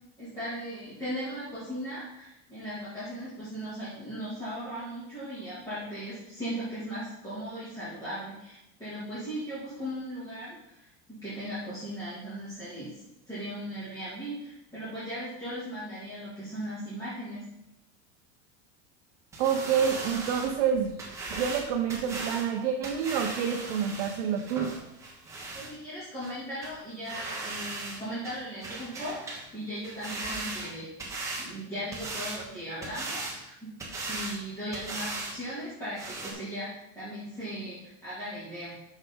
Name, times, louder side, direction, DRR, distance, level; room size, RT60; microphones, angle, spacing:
voice 1, 0.2-17.4 25.5-30.9 31.4-38.7, equal, 10° left, -13 dB, 2.7 m, -38 dB
sound 1, 19.3-25.7 26.2-26.3 26.6-26.7 27.0-28.0 28.2-29.5 29.8-31.5 31.9-32.4 32.8-33.4 33.8-34.4 34.7-35.4 35.6-35.7 36.0-36.3, right 2 dB, 10° right, 1.5 m, -38 dB
voice 2, 19.4-21.0 21.3-24.7, right 7 dB, 55° right, 2 dB, 0.8 m, -28 dB
8.7 x 6.4 x 3.9 m, 0.86 s
supercardioid pair, 170°, 34 cm